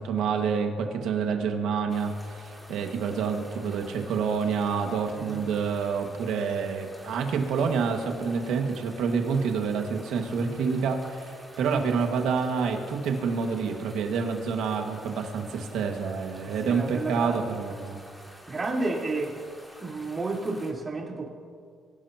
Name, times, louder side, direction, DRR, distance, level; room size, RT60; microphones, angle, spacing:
voice 1, 0.0-18.0, right 5 dB, 85° right, 3 dB, 1.8 m, -28 dB
sound 1, 1.9-20.7, equal, 5° left, 3.7 m, -49 dB
voice 2, 16.5-17.4 18.5-19.4 19.8-21.3, right 3 dB, 30° right, -2 dB, 4.0 m, -31 dB
25.5 x 17.5 x 2.9 m, 2.2 s
cardioid pair, 90°, 0 cm